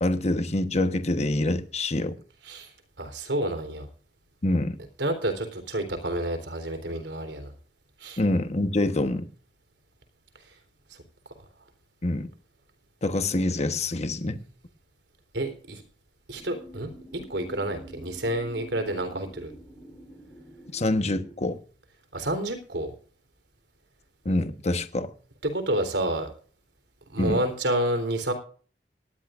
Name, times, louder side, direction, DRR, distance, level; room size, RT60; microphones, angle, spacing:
voice 1, 0.0-2.2 4.4-4.8 8.2-9.2 12.0-12.3 13.0-14.4 20.7-21.6 24.2-25.1 27.2-27.4, left 1 dB, 40° left, 1.2 m, -26 dB
voice 2, 3.0-3.9 5.0-7.5 8.0-8.2 15.3-15.8 16.3-19.5 22.1-22.9 25.4-26.3 27.1-28.3, right 1 dB, 90° right, 3.7 m, -29 dB
sound 1, 16.3-21.4, right 1 dB, 10° right, 4.9 m, -47 dB
19.0 x 15.0 x 2.6 m
head